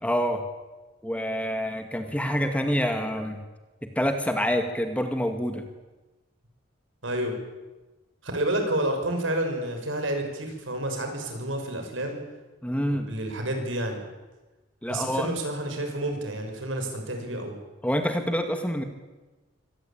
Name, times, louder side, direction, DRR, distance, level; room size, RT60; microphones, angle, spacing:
voice 1, 0.0-0.4 1.0-3.4 4.0-5.6 12.6-13.1 14.8-15.3 17.8-18.8, equal, 5° left, 6 dB, 2.0 m, -27 dB
voice 2, 7.0-7.3 8.2-12.2 12.9-14.0 14.9-17.6, right 1 dB, 70° right, 4 dB, 6.0 m, -29 dB
25.0 x 18.5 x 8.8 m, 1.2 s
head